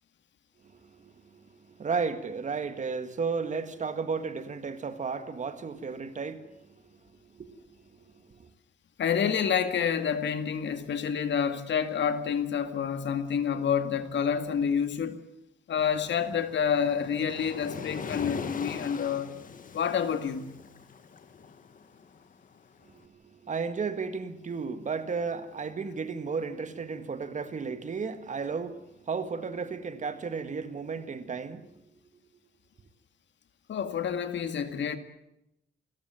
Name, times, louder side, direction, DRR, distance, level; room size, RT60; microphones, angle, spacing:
voice 1, 0.6-8.5 22.8-32.0, right 5 dB, 35° right, 1.8 m, -34 dB
voice 2, 9.0-15.2 15.7-19.3 19.7-20.5 33.7-35.0, left 7 dB, 65° left, 2.2 m, -28 dB
Waves surf, 15.8-22.9, left 5 dB, 40° left, 1.9 m, -41 dB
29.0 x 14.0 x 9.1 m
wide cardioid pair, 170°, 20 cm